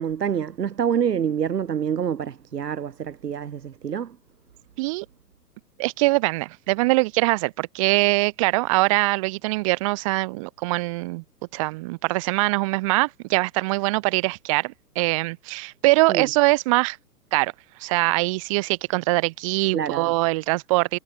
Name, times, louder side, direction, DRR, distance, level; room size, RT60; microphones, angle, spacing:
voice 1, 0.0-4.2 16.1-16.3 19.7-20.1, right 8 dB, 75° right, 0.9 m, -26 dB
voice 2, 5.8-11.2 11.5-17.0 17.3-17.5 17.8-21.0, right 23 dB, 20° right, 0.7 m, -23 dB
figure-of-eight pair, 120°, 49 cm